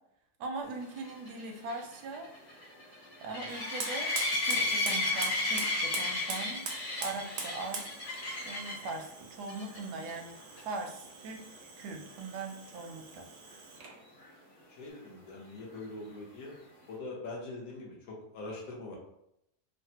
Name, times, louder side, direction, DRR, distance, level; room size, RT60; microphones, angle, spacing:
voice 1, 0.4-2.3 3.2-6.6 7.0-7.9 8.4-13.3, right 3 dB, 85° right, 3 dB, 1.1 m, -40 dB
sound 1, 1.0-8.9 9.5-9.8 10.1-10.2 10.6-10.7 14.2-14.3, left 2 dB, 45° left, 1.2 m, -33 dB
Fire, 3.5-14.0, right 4 dB, 65° right, 0.7 m, -43 dB
voice 2, 14.7-16.5 16.9-19.0, left 2 dB, 70° left, -2 dB, 1.1 m, -43 dB
3.2 x 2.1 x 2.7 m, 0.79 s
omnidirectional pair, 1.7 m